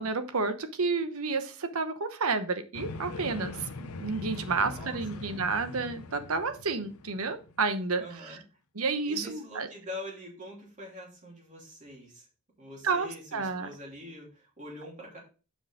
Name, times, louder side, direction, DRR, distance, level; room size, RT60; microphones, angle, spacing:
voice 1, 0.0-8.0 8.7-9.7 12.8-13.7, right 4 dB, 65° right, 9 dB, 1.0 m, -30 dB
sound 1, 2.7-8.1, left 3 dB, 75° left, 0.7 m, -41 dB
voice 2, 4.6-5.3 8.0-8.4 9.0-12.3 12.6-15.2, left 1 dB, 35° right, -1 dB, 2.9 m, -44 dB
7.2 x 5.7 x 3.7 m, 0.34 s
head